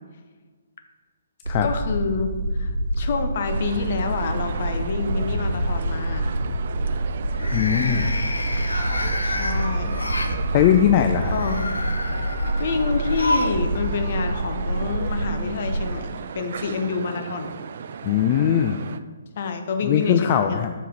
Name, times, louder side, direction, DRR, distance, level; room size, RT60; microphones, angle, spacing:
sound 1, 1.5-15.9, right 1 dB, 85° right, 0.8 m, -27 dB
voice 1, 1.6-6.4 9.2-10.1 11.3-11.8 12.6-16.1 16.3-17.5 19.4-20.6, left 5 dB, 50° left, 7 dB, 0.7 m, -28 dB
sound 2, 3.4-19.0, right 6 dB, 55° right, 0.3 m, -35 dB
sound 3, 3.8-4.4 4.8-5.2 7.3-10.4 11.2-13.6 13.9-14.0 15.1-15.2, left 1 dB, 85° left, 0.7 m, -30 dB
voice 2, 7.5-8.2 10.5-11.3 18.0-18.8 19.8-20.7, left 9 dB, 35° left, 6 dB, 0.3 m, -20 dB
5.9 x 4.6 x 4.6 m, 1.4 s
figure-of-eight pair, 135°, 0 cm